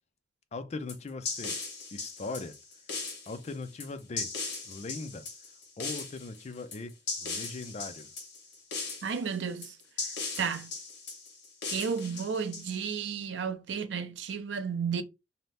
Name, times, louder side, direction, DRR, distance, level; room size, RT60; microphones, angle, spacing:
voice 1, 0.5-1.6 1.9-2.6 3.3-4.3 4.6-5.3 5.8-6.9 7.2-8.1, left 3 dB, 35° left, 0.4 m, -39 dB
sound 1, 0.9-13.1, left 4 dB, 65° left, 1.2 m, -38 dB
voice 2, 9.0-9.8 10.4-10.7 11.7-15.0, right 6 dB, 70° right, 0.4 m, -32 dB
2.7 x 2.0 x 3.2 m
head